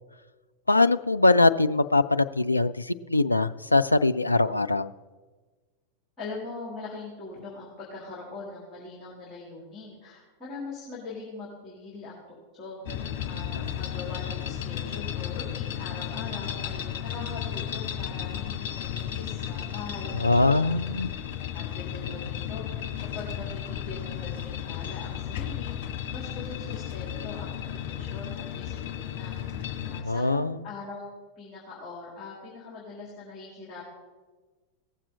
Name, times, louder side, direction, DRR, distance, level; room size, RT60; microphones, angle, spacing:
voice 1, 0.7-4.9 13.5-13.8 20.1-21.1 29.9-30.6, left 2 dB, 85° left, 11 dB, 0.3 m, -22 dB
voice 2, 6.2-12.2 12.5-20.9 21.5-25.7 26.1-31.1 31.4-33.9, left 3 dB, 20° left, -5 dB, 3.3 m, -42 dB
sound 1, 12.8-30.0, left 10 dB, 45° left, 1.6 m, -34 dB
17.5 x 7.4 x 4.0 m, 1.3 s
figure-of-eight pair, 90°, 0 cm